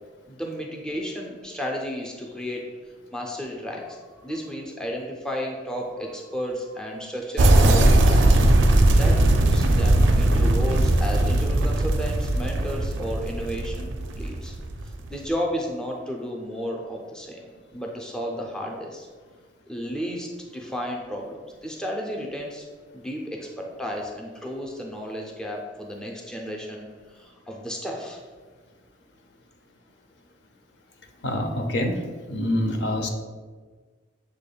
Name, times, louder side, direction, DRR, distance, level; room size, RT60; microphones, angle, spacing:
voice 1, 0.3-2.6 3.1-8.3 8.7-14.5 14.8-17.4 17.7-19.1 19.7-22.7 22.9-28.2, equal, 5° left, -1 dB, 0.4 m, -33 dB
sound 1, 7.4-15.1, right 1 dB, 85° right, 0.4 m, -19 dB
voice 2, 31.2-31.9 32.3-33.1, left 1 dB, 70° left, 4 dB, 0.5 m, -25 dB
6.5 x 3.3 x 2.2 m, 1.5 s
head